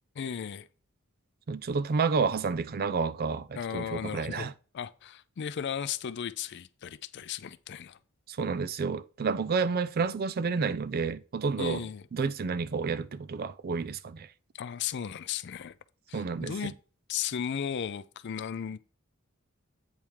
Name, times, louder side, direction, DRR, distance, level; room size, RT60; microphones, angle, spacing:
voice 1, 0.2-0.7 3.6-4.5 4.7-8.0 11.6-12.0 14.5-15.7 16.1-16.7 17.1-18.8, left 8 dB, 55° left, 0.4 m, -35 dB
voice 2, 1.5-4.5 8.3-11.8 12.1-14.3 16.1-16.5, right 5 dB, 45° right, 0.4 m, -30 dB
8.7 x 3.5 x 4.6 m
head